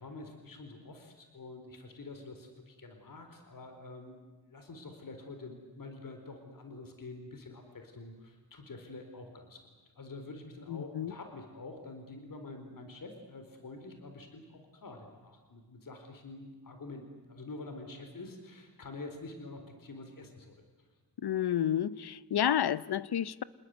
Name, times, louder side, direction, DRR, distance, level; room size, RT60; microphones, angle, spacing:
voice 1, 0.0-4.2 4.4-9.6 10.0-20.9, left 2 dB, 60° left, 4.1 m, -47 dB
voice 2, 10.7-11.1 21.2-23.4, left 10 dB, 85° left, 0.8 m, -30 dB
28.0 x 20.5 x 9.5 m
wide cardioid pair, 100°, 38 cm